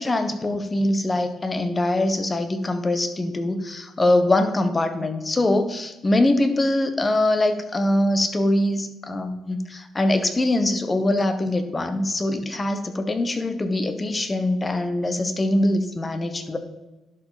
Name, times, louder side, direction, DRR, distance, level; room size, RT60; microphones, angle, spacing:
voice 1, 0.0-16.6, left 1 dB, 25° left, 9 dB, 1.2 m, -23 dB
11.0 x 5.2 x 5.1 m, 1.1 s
cardioid pair, 90°, 0 cm